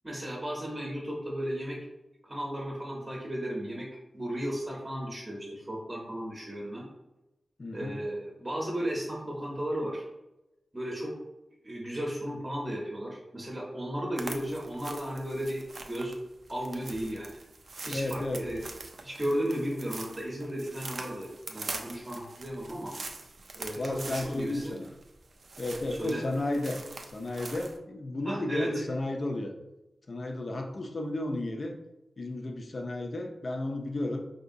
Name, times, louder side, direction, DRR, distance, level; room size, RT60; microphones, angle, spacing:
voice 1, 0.0-1.8 2.2-3.9 4.1-6.9 7.7-10.0 10.7-11.1 11.6-16.2 16.5-17.4 17.9-18.6 19.0-22.9 23.5-24.8 25.9-26.2 28.2-28.8, equal, 15° right, -3 dB, 0.8 m, -34 dB
voice 2, 7.6-8.0 17.9-18.5 23.8-24.9 25.6-26.8 27.1-29.5 30.1-31.8 32.2-34.2, left 2 dB, 45° left, 3 dB, 0.5 m, -33 dB
sound 1, 14.2-27.8, right 3 dB, 60° right, 0.4 m, -44 dB
4.6 x 2.7 x 2.6 m, 0.94 s
wide cardioid pair, 140°, 0 cm